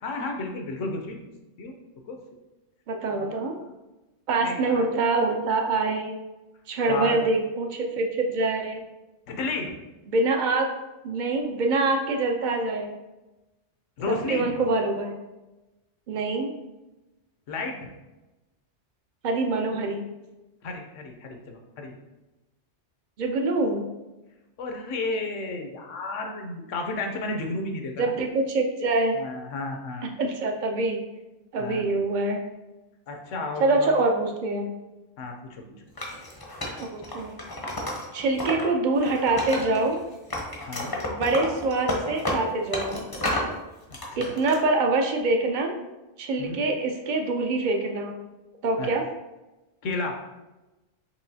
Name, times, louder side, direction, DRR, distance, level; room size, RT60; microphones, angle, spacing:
voice 1, 0.0-1.2 1.6-1.7 2.1-2.2 3.1-3.5 4.4-4.8 6.9-7.2 9.3-9.7 14.0-14.7 17.5-17.9 20.6-22.0 24.6-28.1 29.1-30.1 31.6-31.8 33.1-33.9 35.2-35.9 40.6-41.0 43.9-44.3 46.4-46.6 48.8-48.9 49.8-50.2, left 3 dB, 85° left, 3 dB, 1.0 m, -32 dB
voice 2, 2.9-3.6 4.3-6.2 6.7-8.8 10.1-10.7 11.0-12.9 14.1-15.1 16.1-16.5 19.2-20.0 23.2-23.9 28.0-29.2 30.2-31.0 31.5-32.4 33.6-34.7 36.8-37.3 38.1-40.0 41.1-43.0 44.2-45.8 46.2-48.1 48.6-49.0, right 3 dB, 55° right, 3 dB, 0.5 m, -25 dB
Wood, 36.0-38.6 39.0-40.0 40.3-43.5 43.9-44.6, left 1 dB, 25° left, 0.5 m, -31 dB
4.7 x 3.0 x 2.7 m, 1.0 s
omnidirectional pair, 1.3 m